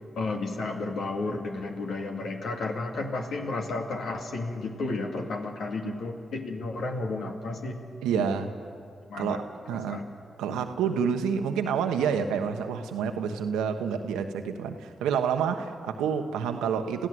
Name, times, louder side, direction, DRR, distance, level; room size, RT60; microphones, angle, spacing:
voice 1, 0.1-7.8 8.2-8.4 9.1-9.4 9.7-10.0, left 3 dB, 75° left, 2 dB, 2.3 m, -32 dB
voice 2, 8.0-8.5 9.2-10.0 10.4-17.1, right 7 dB, 90° right, 6 dB, 1.1 m, -28 dB
27.5 x 16.0 x 7.9 m, 2.3 s
supercardioid pair, 40°, 0 cm